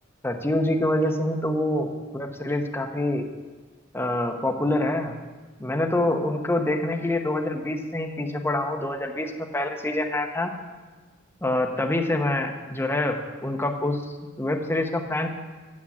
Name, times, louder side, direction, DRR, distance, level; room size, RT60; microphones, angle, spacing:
voice 1, 0.2-3.2 3.9-5.1 5.6-10.5 11.4-15.3, left 1 dB, 10° left, 3 dB, 0.8 m, -26 dB
8.5 x 7.4 x 7.2 m, 1.3 s
head